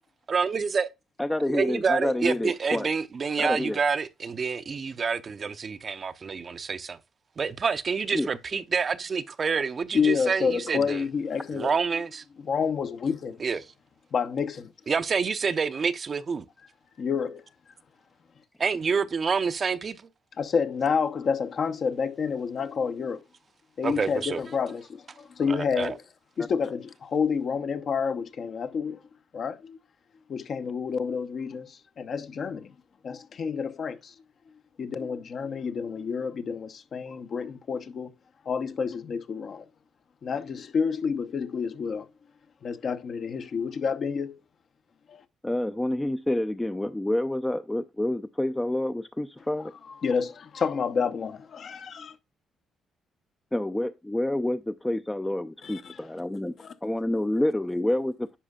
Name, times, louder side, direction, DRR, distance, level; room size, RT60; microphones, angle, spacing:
voice 1, 0.3-0.9 1.5-7.0 7.4-11.0 11.5-12.2 13.4-13.6 14.9-16.4 18.6-20.0 23.8-24.4 25.5-25.9, right 5 dB, 40° right, 0.6 m, -28 dB
voice 2, 1.2-2.9 3.4-3.8 8.1-8.3 45.4-49.7 53.5-56.5 56.8-58.4, left 1 dB, 10° left, 0.4 m, -28 dB
voice 3, 9.9-11.8 12.4-13.4 14.1-14.7 17.0-17.4 20.4-23.2 23.8-26.0 26.4-29.0 29.3-29.8 30.3-32.7 33.0-34.1 34.8-38.1 38.5-39.6 40.2-42.1 42.6-44.4 45.1-45.2 49.6-52.2 55.6-56.0 56.6-56.7, left 6 dB, 55° left, 0.8 m, -29 dB
10.0 x 5.4 x 2.3 m
cardioid pair, 90°, 0 cm